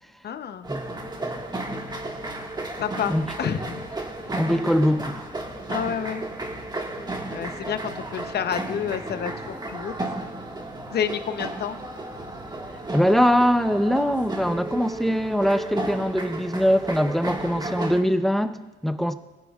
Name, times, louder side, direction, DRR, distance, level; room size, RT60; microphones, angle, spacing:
voice 1, 0.2-0.7 2.8-3.8 5.7-6.2 7.3-9.9 10.9-11.8, left 8 dB, 55° left, 10 dB, 0.8 m, -29 dB
sound 1, 0.6-18.0, right 2 dB, 20° right, 1.7 m, -33 dB
voice 2, 4.4-5.2 12.9-19.1, equal, ahead, 10 dB, 0.7 m, -22 dB
21.0 x 10.5 x 2.4 m, 1.2 s
cardioid pair, 90°, 20 cm